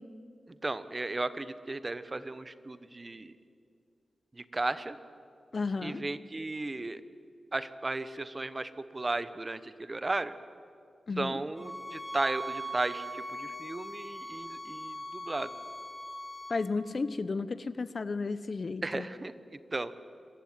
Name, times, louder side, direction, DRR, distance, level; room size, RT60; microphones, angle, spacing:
voice 1, 0.6-3.3 4.3-5.0 5.8-7.0 7.5-10.3 11.2-15.5 18.8-19.3 19.7-19.9, right 2 dB, 30° right, 14 dB, 1.0 m, -35 dB
voice 2, 5.5-6.0 11.1-11.4 16.5-19.1, left 4 dB, 50° left, 15 dB, 0.9 m, -33 dB
sound 1, 11.6-16.6, right 1 dB, 5° left, 4.8 m, -40 dB
26.5 x 15.0 x 9.5 m, 2.4 s
cardioid pair, 75°, 0 cm